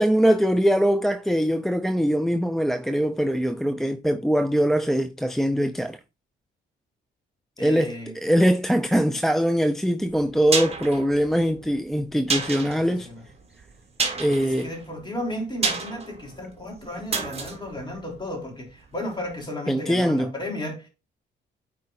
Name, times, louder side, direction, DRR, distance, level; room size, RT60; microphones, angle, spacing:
voice 1, 0.0-6.0 7.6-13.1 14.2-14.7 19.7-20.3, equal, ahead, 0.4 m, -22 dB
voice 2, 7.6-8.1 12.9-13.3 14.4-20.9, left 1 dB, 25° left, 3.3 m, -34 dB
sound 1, 10.1-19.0 19.3-19.4, right 4 dB, 30° right, 1.8 m, -31 dB
9.1 x 4.7 x 2.6 m
cardioid pair, 90°, 20 cm